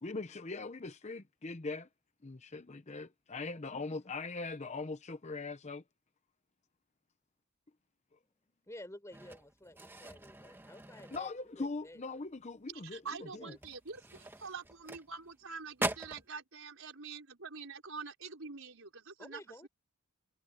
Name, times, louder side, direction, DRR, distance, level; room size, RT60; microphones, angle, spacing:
voice 1, 0.0-1.9 2.2-5.8 11.1-13.0, left 3 dB, 30° left, 0.8 m, -41 dB
voice 2, 3.5-3.8 8.7-12.0 13.0-13.6 19.2-19.7, left 1 dB, 15° left, 3.9 m, -52 dB
sound 1, 9.1-11.7 12.1-12.4 12.8-12.9 13.5-15.4 15.7-16.3, right 2 dB, 10° right, 1.4 m, -41 dB
voice 3, 12.7-19.7, right 5 dB, 70° right, 4.7 m, -46 dB
head